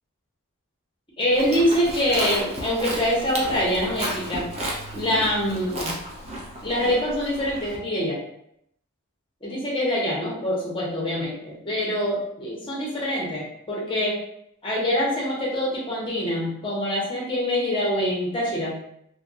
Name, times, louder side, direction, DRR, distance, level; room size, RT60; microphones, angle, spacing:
voice 1, 1.2-4.5 4.9-6.0 6.6-8.2 9.4-14.2 14.6-18.7, equal, 25° left, -4 dB, 0.9 m, -25 dB
Livestock farm animals working animals, 1.3-7.8, right 1 dB, 30° right, 0.6 m, -33 dB
3.1 x 2.5 x 2.6 m, 0.75 s
head